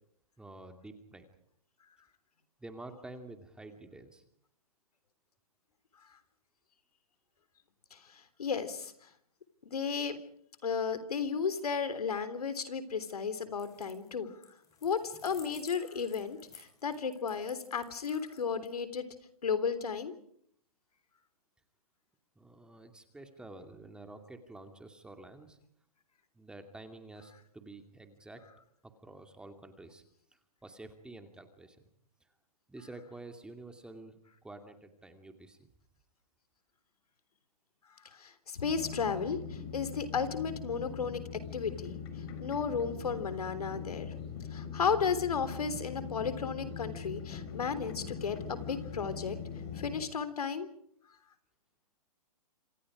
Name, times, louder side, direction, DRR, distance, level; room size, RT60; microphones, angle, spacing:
voice 1, 0.4-1.2 2.6-4.2 22.4-25.6 26.3-28.4 29.0-30.0 30.6-31.8 32.7-35.6, right 2 dB, 5° right, 6 dB, 2.5 m, -49 dB
voice 2, 7.9-9.1 9.6-10.2 10.6-14.4 14.8-19.1 19.4-20.1 38.0-41.2 41.5-41.9 42.4-44.1 44.5-49.4 49.7-50.7, left 6 dB, 80° left, 11 dB, 3.5 m, -34 dB
sound 1, 13.5-14.1 14.4-18.7, left 5 dB, 15° left, 7.0 m, -54 dB
sound 2, 38.6-50.0, left 7 dB, 45° left, 5.1 m, -41 dB
28.0 x 27.0 x 5.0 m, 0.66 s
hypercardioid pair, 135°, 19 cm